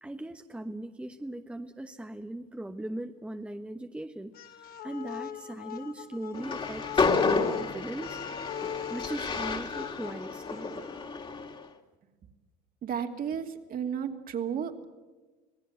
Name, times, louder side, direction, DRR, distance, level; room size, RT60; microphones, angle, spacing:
voice 1, 0.0-7.1 7.4-8.2 8.9-10.8, right 1 dB, 5° right, 6 dB, 1.1 m, -39 dB
sound 1, 4.3-11.0, left 9 dB, 50° left, 2.0 m, -40 dB
Train, 6.3-11.6, left 4 dB, 25° left, 2.5 m, -30 dB
voice 2, 12.8-14.9, right 8 dB, 45° right, 5 dB, 2.8 m, -33 dB
26.5 x 18.0 x 8.0 m, 1.2 s
supercardioid pair, 100°, 20 cm